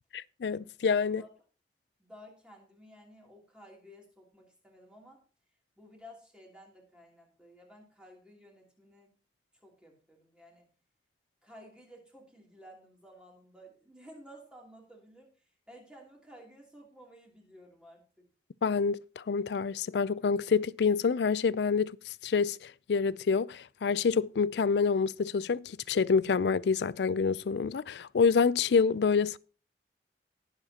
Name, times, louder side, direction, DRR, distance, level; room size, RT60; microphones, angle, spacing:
voice 1, 0.1-1.2 18.6-29.4, left 5 dB, 75° left, 0.4 m, -27 dB
voice 2, 2.0-5.2 5.8-9.1 9.6-10.7 11.4-15.3 15.7-18.3, equal, 5° right, 3.0 m, -54 dB
19.0 x 7.4 x 2.9 m
head